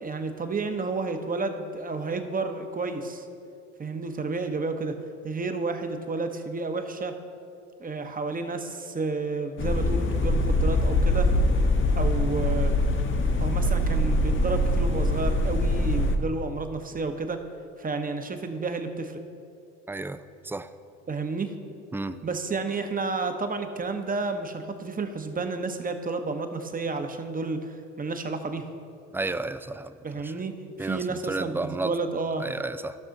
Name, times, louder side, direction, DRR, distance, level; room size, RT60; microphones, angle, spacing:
voice 1, 0.0-3.3 3.8-4.9 5.2-7.1 7.8-11.3 11.9-12.8 13.4-17.4 17.8-19.2 21.1-21.5 22.2-28.7 30.0-32.4, right 3 dB, 25° right, 7 dB, 1.0 m, -31 dB
sound 1, 9.6-16.2, left 1 dB, 35° left, 1.0 m, -23 dB
voice 2, 19.9-20.7 21.9-22.2 29.1-30.4 30.8-31.9 32.4-33.0, right 2 dB, 5° right, 12 dB, 0.3 m, -33 dB
14.0 x 6.1 x 3.9 m, 2.5 s
hypercardioid pair, 65°, 36 cm